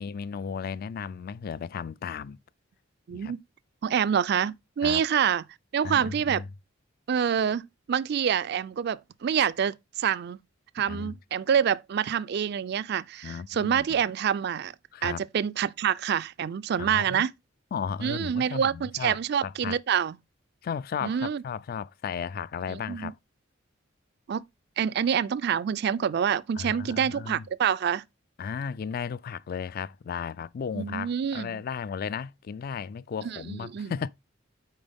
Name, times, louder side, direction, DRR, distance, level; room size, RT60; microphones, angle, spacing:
voice 1, 0.0-2.4 3.1-3.3 4.8-5.0 5.8-6.5 10.9-11.1 13.2-14.0 14.9-15.2 16.8-17.2 17.7-19.8 20.6-23.2 26.6-27.4 28.4-34.1, left 6 dB, 50° left, 0.3 m, -35 dB
voice 2, 3.1-3.4 3.8-5.4 5.7-6.4 7.1-7.6 7.9-10.4 10.8-14.7 15.0-17.3 18.0-20.1 21.0-21.4 22.7-23.1 24.3-24.4 24.8-28.0 30.8-31.6 33.2-33.9, right 8 dB, 55° right, 0.3 m, -27 dB
9.0 x 4.3 x 3.5 m
head